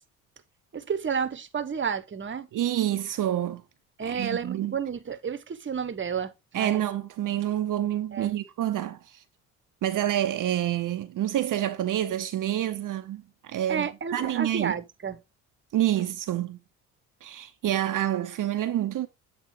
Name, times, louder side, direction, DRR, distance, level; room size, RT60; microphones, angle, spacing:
voice 1, 0.7-2.5 4.0-6.8 8.1-8.4 13.7-15.2, right 6 dB, 30° right, 1.1 m, -31 dB
voice 2, 2.5-3.6 4.0-4.8 6.5-9.2 9.8-14.7 15.7-16.6 17.2-19.1, right 12 dB, 50° right, 0.8 m, -28 dB
8.2 x 3.4 x 4.8 m
hypercardioid pair, 55°, 39 cm